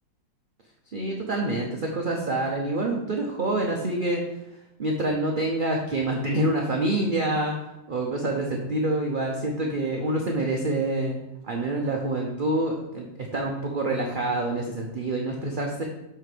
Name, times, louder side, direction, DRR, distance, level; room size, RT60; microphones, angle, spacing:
voice 1, 0.9-4.2 4.8-7.5 7.9-11.2 11.4-15.8, right 2 dB, 55° right, 1 dB, 0.6 m, -26 dB
7.7 x 3.4 x 5.0 m, 0.92 s
omnidirectional pair, 1.8 m